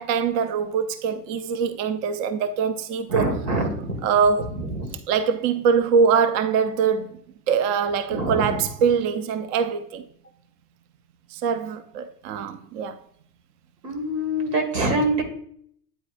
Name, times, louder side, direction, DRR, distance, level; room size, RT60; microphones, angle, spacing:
voice 1, 0.0-3.3 4.0-4.5 5.1-7.2 7.5-10.0 11.3-13.0, right 6 dB, 35° right, 0.5 m, -23 dB
voice 2, 3.1-4.0 4.6-4.9 8.1-8.6 13.8-15.2, right 1 dB, 85° right, 1.9 m, -25 dB
8.8 x 4.7 x 2.5 m
hypercardioid pair, 110°, 47 cm